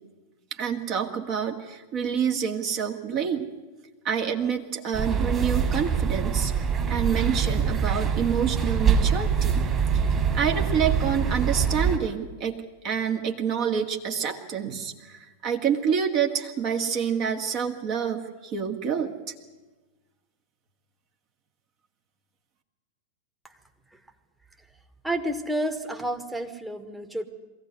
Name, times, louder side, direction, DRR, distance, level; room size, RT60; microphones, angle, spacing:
voice 1, 0.5-3.5 4.0-6.5 6.9-9.7 9.9-12.6 12.8-19.3, right 7 dB, 40° right, 3 dB, 2.1 m, -27 dB
sound 1, 4.9-12.0, right 6 dB, 25° right, 3.1 m, -24 dB
voice 2, 25.0-27.3, right 1 dB, 5° right, 5 dB, 1.5 m, -30 dB
21.5 x 16.0 x 9.5 m, 1.2 s
figure-of-eight pair, 90°, 0 cm